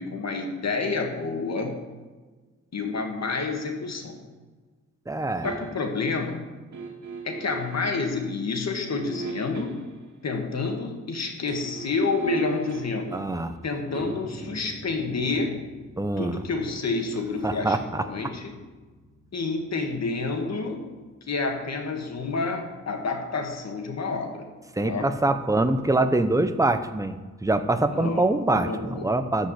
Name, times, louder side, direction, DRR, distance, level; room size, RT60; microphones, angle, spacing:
voice 1, 0.0-1.8 2.7-4.2 5.4-6.5 7.2-9.8 10.2-13.2 13.6-15.6 16.2-18.5 19.3-20.9 21.3-24.5 24.8-25.1 27.9-29.1, left 4 dB, 60° left, 3 dB, 2.0 m, -29 dB
voice 2, 5.1-5.5 13.1-13.6 16.0-16.4 17.4-18.0 24.8-27.2 27.4-29.5, right 2 dB, 10° right, 9 dB, 0.8 m, -24 dB
sound 1, 5.4-6.0 6.7-7.9 8.9-10.1 11.3-22.3 22.6-22.7, right 4 dB, 65° right, 2.6 m, -40 dB
14.0 x 5.2 x 8.6 m, 1.3 s
wide cardioid pair, 115°, 30 cm